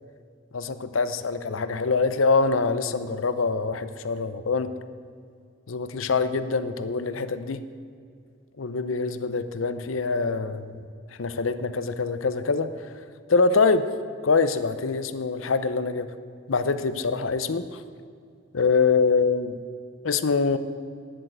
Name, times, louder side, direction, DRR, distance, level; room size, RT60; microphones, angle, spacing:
voice 1, 0.5-4.7 5.7-7.6 8.6-10.8 11.2-12.7 13.3-13.9 14.2-16.1 16.5-17.8 18.5-19.6 20.0-20.6, left 4 dB, 90° left, 12 dB, 0.7 m, -24 dB
10.5 x 7.6 x 7.9 m, 2.3 s
head